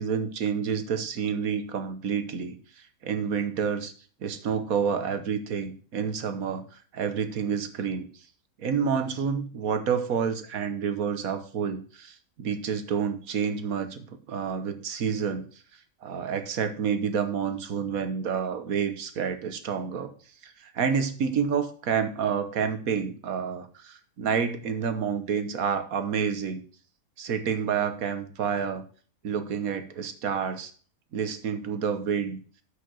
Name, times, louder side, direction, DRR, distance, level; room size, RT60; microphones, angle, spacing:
voice 1, 0.0-2.6 3.0-3.9 4.2-8.1 8.6-15.4 16.0-20.1 20.4-26.6 27.2-28.8 29.2-30.7 31.1-32.4, right 7 dB, 80° right, 9 dB, 1.6 m, -29 dB
7.6 x 6.6 x 6.2 m, 0.42 s
omnidirectional pair, 1.5 m